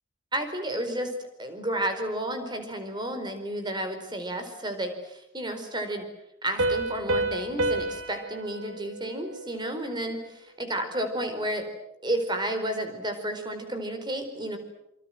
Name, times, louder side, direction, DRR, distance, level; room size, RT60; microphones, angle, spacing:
voice 1, 0.3-1.1 1.4-6.1 6.4-11.7 12.0-14.6, right 1 dB, 20° right, 7 dB, 4.5 m, -31 dB
Piano, 6.6-10.0, right 2 dB, 90° right, 3.0 m, -30 dB
27.5 x 25.5 x 7.8 m, 0.86 s
head